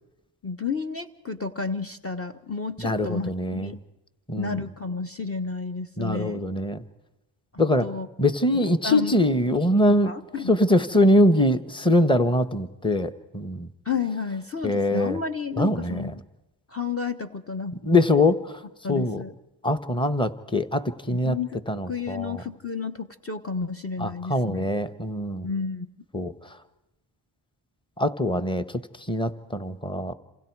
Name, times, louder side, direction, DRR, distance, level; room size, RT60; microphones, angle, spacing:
voice 1, 0.4-3.8 4.4-6.4 7.8-8.1 8.8-9.2 9.9-10.5 13.8-16.2 16.7-17.7 18.8-19.3 21.1-24.7 25.4-25.9, left 5 dB, 30° left, 9 dB, 1.2 m, -31 dB
voice 2, 2.8-3.7 4.3-4.6 6.0-6.8 7.6-7.9 8.2-10.1 10.5-13.7 14.6-15.2 15.6-16.1 17.8-18.6 18.9-19.2 19.6-21.4 21.7-22.4 24.0-25.5 26.1-26.3 28.0-28.6 29.1-30.1, left 1 dB, 10° left, 9 dB, 1.2 m, -23 dB
28.0 x 27.0 x 4.8 m, 0.96 s
cardioid pair, 80°, 47 cm